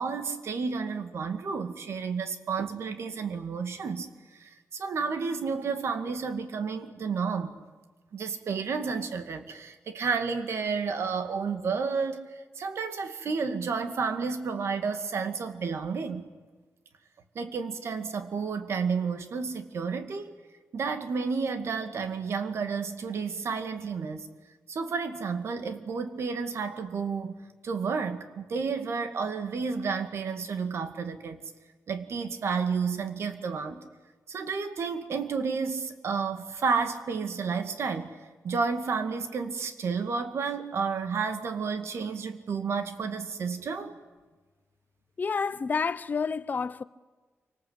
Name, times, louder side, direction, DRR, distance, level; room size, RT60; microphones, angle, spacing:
voice 1, 0.0-4.1 4.3-7.5 8.1-12.3 12.6-16.2 17.3-20.3 20.7-24.3 24.7-27.4 27.6-31.4 31.9-33.8 34.3-38.2 38.4-43.9, right 5 dB, 65° right, 2.3 m, -31 dB
voice 2, 45.2-46.8, left 5 dB, 40° left, 0.8 m, -29 dB
28.0 x 25.0 x 8.2 m
wide cardioid pair, 145°, 5 cm